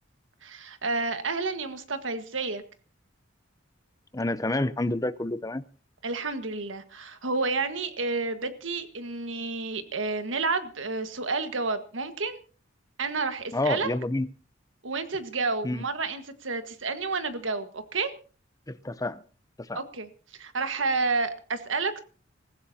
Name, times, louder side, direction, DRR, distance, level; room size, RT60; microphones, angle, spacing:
voice 1, 0.4-2.6 6.0-12.4 13.0-13.9 14.8-18.1 19.7-22.0, right 3 dB, 85° right, 1.6 m, -30 dB
voice 2, 4.1-5.6 13.5-14.3 15.6-15.8 18.7-19.2 19.7-19.8, left 2 dB, 20° left, 0.7 m, -28 dB
26.5 x 15.5 x 2.8 m
head